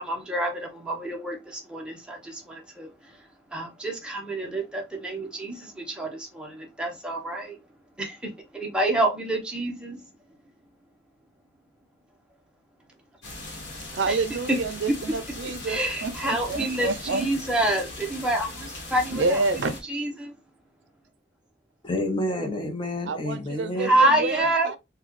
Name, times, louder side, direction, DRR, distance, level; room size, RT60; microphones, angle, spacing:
voice 1, 0.0-2.9 3.5-7.6 8.0-10.0 14.1-14.2 14.5-14.6 15.1-15.2 15.7-20.3 23.8-24.7, right 1 dB, 5° right, 0.8 m, -27 dB
sound 1, 13.2-19.8, left 2 dB, 90° left, 1.3 m, -39 dB
voice 2, 13.9-17.3 19.1-19.7 23.1-24.8, right 3 dB, 85° right, 0.4 m, -28 dB
voice 3, 21.8-23.9, left 1 dB, 25° left, 0.7 m, -29 dB
3.9 x 2.3 x 3.0 m
head